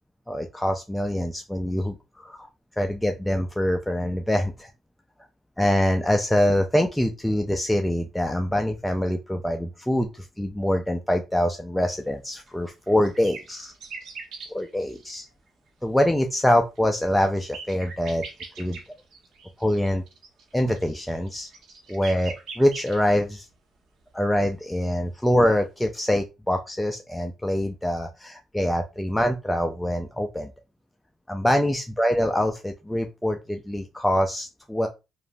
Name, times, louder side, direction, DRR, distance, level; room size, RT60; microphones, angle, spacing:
voice 1, 0.3-2.5 2.8-4.7 5.6-13.7 14.5-15.3 15.8-18.2 18.6-18.8 19.6-20.0 20.5-21.5 21.9-23.5 24.1-30.5 31.3-34.9, left 1 dB, 5° left, 4 dB, 0.3 m, -24 dB
sound 1, 12.5-15.1 16.8-23.0 25.9-26.0, right 4 dB, 70° right, 0.8 m, -42 dB
2.9 x 2.1 x 2.5 m, 0.26 s
cardioid pair, 90°, 0 cm